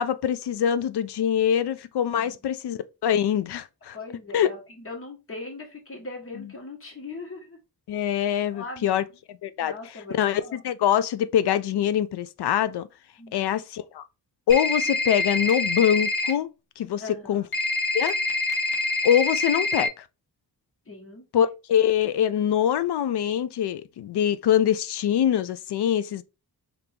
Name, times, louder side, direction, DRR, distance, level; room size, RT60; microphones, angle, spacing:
voice 1, 0.0-4.0 4.3-4.5 6.4-6.5 7.9-9.7 10.1-12.9 13.3-14.0 14.5-16.5 16.8-17.0 17.3-17.4 17.9-18.2 19.0-20.0 21.3-26.2, left 9 dB, 80° left, 0.5 m, -24 dB
voice 2, 3.9-7.6 8.5-9.0 9.6-10.6 13.2-13.5 17.0-17.5 20.9-21.2, left 3 dB, 35° left, 1.4 m, -40 dB
sound 1, 14.5-16.3 17.5-19.9, left 2 dB, 65° left, 1.1 m, -26 dB
4.4 x 2.6 x 3.4 m
wide cardioid pair, 155°, 39 cm